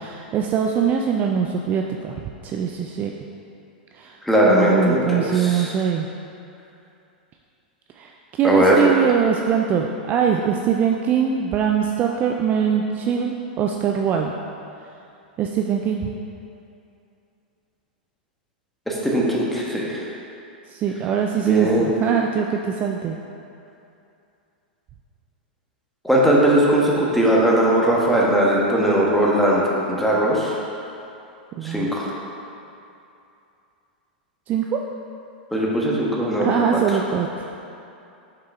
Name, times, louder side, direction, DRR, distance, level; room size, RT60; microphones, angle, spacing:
voice 1, 0.0-2.1 2.4-3.1 4.0-4.2 4.5-6.1 8.0-14.3 15.4-16.1 20.7-23.2 31.6-31.9 34.5-34.8 36.4-37.5, right 7 dB, 35° right, 2 dB, 0.4 m, -22 dB
voice 2, 4.2-5.7 8.4-8.9 18.9-20.0 21.4-21.9 26.0-29.6 29.9-30.5 31.6-32.1 35.5-36.5 36.7-36.8, right 1 dB, ahead, -4 dB, 1.3 m, -19 dB
6.0 x 4.7 x 4.3 m, 2.6 s
hypercardioid pair, 105°, 5 cm